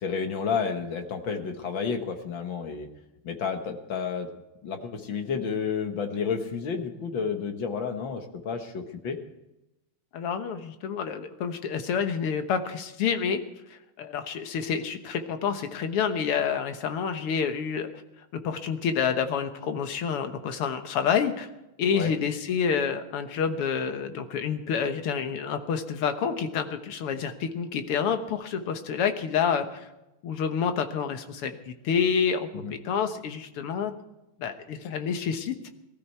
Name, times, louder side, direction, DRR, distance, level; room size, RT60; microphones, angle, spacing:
voice 1, 0.0-2.9 3.2-4.3 4.6-9.2 21.9-22.1 32.5-32.7, left 6 dB, 60° left, 5 dB, 2.0 m, -31 dB
voice 2, 10.1-13.4 13.7-17.9 18.3-21.5 21.8-29.9 30.2-33.9 34.4-35.7, left 7 dB, 85° left, 8 dB, 2.1 m, -28 dB
19.0 x 13.5 x 4.6 m, 0.94 s
omnidirectional pair, 2.4 m